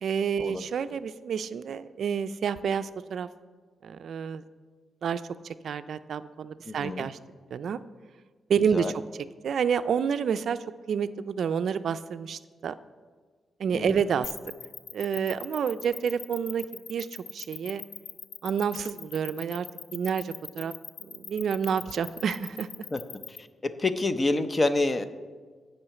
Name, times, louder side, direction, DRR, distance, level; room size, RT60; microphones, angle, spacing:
voice 1, 0.0-3.3 3.8-4.4 5.0-7.2 7.5-7.8 8.5-9.0 9.4-10.6 10.9-12.7 13.6-14.3 14.9-17.8 18.4-19.7 19.9-20.7 21.1-22.7, right 7 dB, 65° right, 13 dB, 0.3 m, -29 dB
voice 2, 6.7-7.0 8.7-8.9 13.7-13.9 22.9-23.0 23.6-25.0, left 2 dB, 25° left, 10 dB, 0.6 m, -27 dB
sound 1, 14.2-23.4, left 7 dB, 75° left, 0.5 m, -40 dB
8.7 x 5.6 x 8.1 m, 1.5 s
wide cardioid pair, 135°, 0 cm